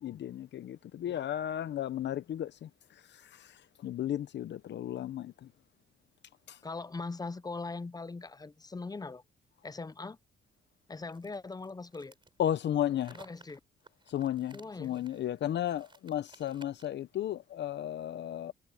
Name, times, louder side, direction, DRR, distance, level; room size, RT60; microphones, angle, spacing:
voice 1, 0.0-2.7 3.1-5.5 6.5-6.6 12.4-13.2 14.1-18.5, left 11 dB, 60° left, 0.8 m, -34 dB
voice 2, 6.6-9.2 9.6-10.2 10.9-12.1 13.1-13.6 14.5-14.9, left 3 dB, 20° left, 0.7 m, -40 dB
sound 1, 11.1-17.0, right 3 dB, 25° right, 4.8 m, -58 dB
cardioid pair, 90°, 20 cm